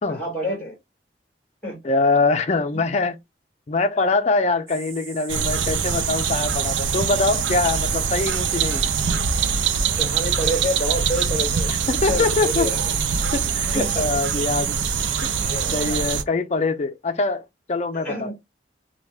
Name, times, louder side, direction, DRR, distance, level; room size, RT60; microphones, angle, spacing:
voice 1, 0.1-0.8 1.6-1.8 2.6-2.8 9.9-11.7 12.1-13.0 13.6-14.1 15.4-16.2 17.9-18.3, equal, 10° left, 1.5 m, -29 dB
voice 2, 1.8-3.2 3.7-8.9 11.9-12.7 13.3-14.8 15.2-15.3 15.7-18.3, left 3 dB, 35° left, 0.4 m, -23 dB
sound 1, 4.7-15.7, right 6 dB, 50° right, 0.8 m, -41 dB
sound 2, 5.3-16.2, right 6 dB, 80° right, 0.5 m, -23 dB
2.9 x 2.3 x 3.4 m
head